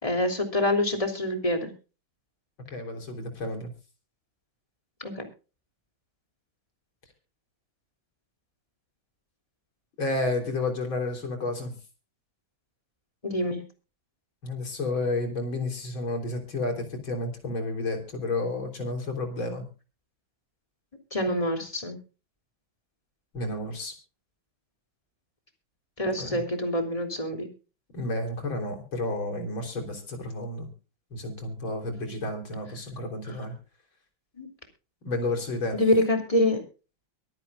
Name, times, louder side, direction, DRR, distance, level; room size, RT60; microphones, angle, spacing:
voice 1, 0.0-1.7 5.0-5.3 13.2-13.6 21.1-22.0 26.0-27.5 33.3-33.4 34.4-34.5 35.7-36.6, left 1 dB, 15° left, 4 dB, 3.1 m, -26 dB
voice 2, 2.7-3.7 10.0-11.7 14.4-19.6 23.3-23.9 26.2-26.4 27.9-30.7 31.1-33.5 35.0-35.8, left 2 dB, 80° left, 3 dB, 4.5 m, -31 dB
23.5 x 10.5 x 2.5 m, 0.34 s
omnidirectional pair, 2.1 m